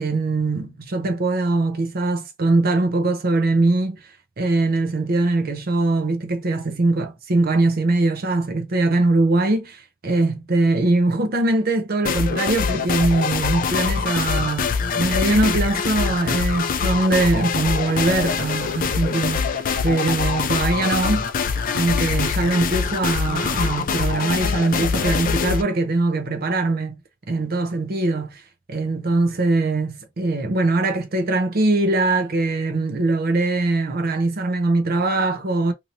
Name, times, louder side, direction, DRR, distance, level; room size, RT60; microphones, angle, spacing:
voice 1, 0.0-4.1 4.4-27.0 27.3-28.4 28.7-35.7, right 2 dB, 45° right, 0.6 m, -22 dB
sound 1, 12.0-25.6, left 5 dB, 45° left, 0.3 m, -24 dB
2.8 x 2.7 x 2.8 m
head